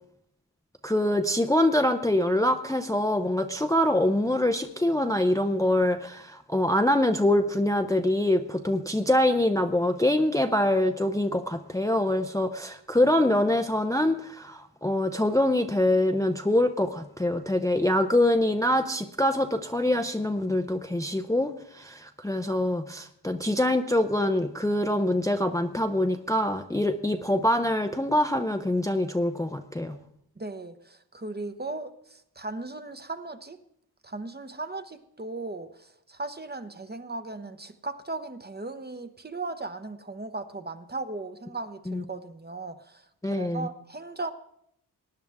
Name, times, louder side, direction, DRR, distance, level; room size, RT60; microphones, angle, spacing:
voice 1, 0.8-30.0 41.9-42.0 43.2-43.7, left 1 dB, 10° left, 7 dB, 0.6 m, -24 dB
voice 2, 30.4-33.6 34.0-44.3, right 3 dB, 25° right, 9 dB, 0.9 m, -37 dB
19.0 x 10.0 x 3.5 m, 0.72 s
wide cardioid pair, 75°, 40 cm